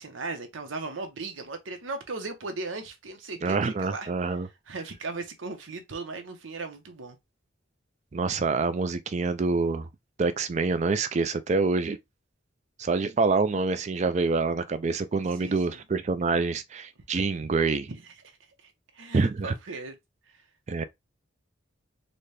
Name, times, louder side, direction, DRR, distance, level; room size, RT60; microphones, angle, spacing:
voice 1, 0.0-4.1 4.7-7.2 15.4-15.8 17.9-18.0 18.6-20.0, right 3 dB, 85° right, 0.9 m, -37 dB
voice 2, 3.4-4.5 8.1-9.9 10.2-12.0 12.8-17.9 19.1-19.5 20.7-20.8, right 4 dB, 35° right, 0.4 m, -26 dB
4.0 x 2.2 x 3.2 m
head